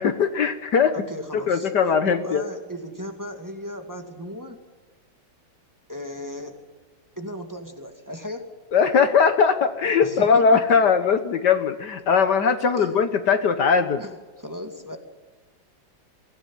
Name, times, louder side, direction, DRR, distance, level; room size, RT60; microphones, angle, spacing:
voice 1, 0.0-0.9 1.3-2.4 8.7-14.0, left 6 dB, 60° left, 9 dB, 1.6 m, -20 dB
voice 2, 0.9-1.7 2.0-4.6 5.9-6.5 7.2-8.4 10.0-10.8 12.8-13.0 14.0-15.0, equal, 10° right, 4 dB, 2.2 m, -36 dB
23.5 x 16.5 x 9.3 m, 1.4 s
omnidirectional pair, 2.2 m